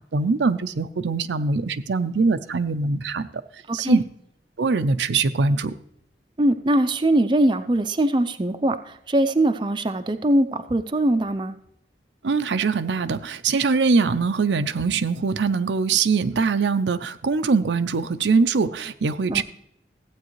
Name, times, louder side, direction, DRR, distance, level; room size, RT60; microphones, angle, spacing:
voice 1, 0.1-3.3 3.7-4.0 4.6-5.7 12.2-19.4, right 4 dB, 90° right, 10 dB, 0.5 m, -22 dB
voice 2, 3.7-4.0 6.4-11.6 19.3-19.4, right 1 dB, 25° right, 8 dB, 0.5 m, -22 dB
14.5 x 8.5 x 3.1 m, 0.74 s
head